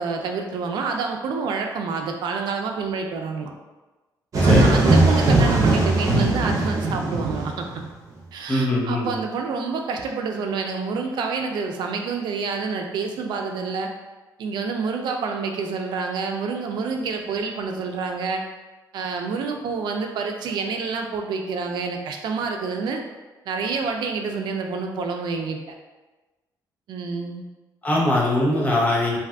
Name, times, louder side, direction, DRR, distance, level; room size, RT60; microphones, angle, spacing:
voice 1, 0.0-3.5 4.4-7.7 8.3-13.9 14.4-18.4 18.9-23.0 23.5-25.6 26.9-27.4, right 4 dB, 75° right, 3 dB, 0.4 m, -28 dB
sound 1, 4.3-7.9, right 2 dB, 45° right, 0.8 m, -19 dB
voice 2, 4.4-4.8 8.5-9.1 27.8-29.2, left 1 dB, 20° left, -4 dB, 0.7 m, -21 dB
2.6 x 2.4 x 3.3 m, 1.2 s
cardioid pair, 115°, 8 cm